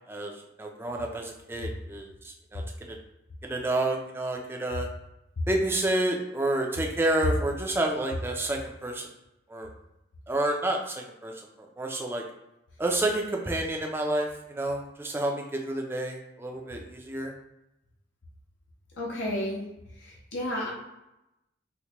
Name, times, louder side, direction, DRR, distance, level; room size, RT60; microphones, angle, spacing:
voice 1, 0.6-2.1 2.5-2.6 2.9-3.0 3.4-4.9 5.5-9.1 9.5-9.7 10.3-11.3 11.8-12.2 12.8-17.3, right 1 dB, 10° right, 1 dB, 0.4 m, -29 dB
voice 2, 19.0-19.6 20.0-20.7, left 1 dB, 75° left, -4 dB, 0.7 m, -32 dB
4.4 x 2.1 x 2.8 m, 0.90 s
head